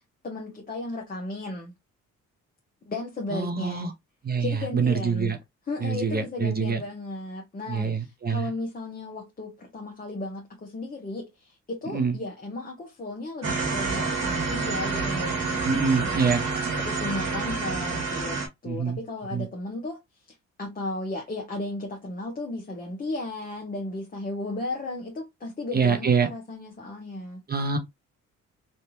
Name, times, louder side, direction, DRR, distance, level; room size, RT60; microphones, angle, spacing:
voice 1, 0.0-1.7 2.9-3.9 4.4-5.3 5.7-16.3 16.8-20.0 20.6-27.4, left 2 dB, 30° left, 1.0 m, -35 dB
voice 2, 3.3-3.9 4.2-5.4 5.8-6.8 7.7-8.4 11.9-12.2 15.6-16.4 18.6-19.0 19.3-19.4 25.7-26.3 27.5-27.8, right 5 dB, 30° right, 0.9 m, -25 dB
sound 1, 13.4-18.5, right 4 dB, 60° right, 1.6 m, -28 dB
3.4 x 2.5 x 2.9 m
cardioid pair, 90°, 30 cm